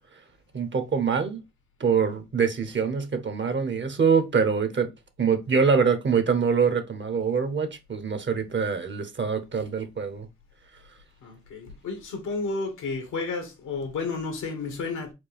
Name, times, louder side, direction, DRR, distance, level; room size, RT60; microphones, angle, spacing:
voice 1, 0.5-1.4 1.8-4.9 5.2-10.3, right 6 dB, 40° right, 0.9 m, -24 dB
voice 2, 11.2-15.1, left 4 dB, 75° left, 1.3 m, -32 dB
4.4 x 2.3 x 3.3 m
supercardioid pair, 50°, 30 cm